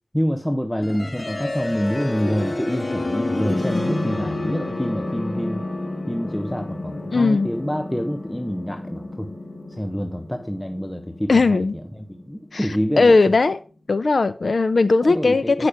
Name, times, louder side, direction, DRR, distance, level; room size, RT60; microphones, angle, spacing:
voice 1, 0.1-5.7 6.1-9.3 9.7-11.6 12.1-13.2 15.0-15.7, equal, 10° left, 5 dB, 1.0 m, -27 dB
sound 1, 0.8-12.7, left 2 dB, 55° left, 1.7 m, -30 dB
voice 2, 7.1-7.5 11.3-11.7 12.5-12.7 13.0-13.6 13.9-15.7, left 3 dB, 80° left, 12 dB, 0.5 m, -18 dB
8.5 x 6.0 x 4.9 m, 0.37 s
wide cardioid pair, 50°, 0 cm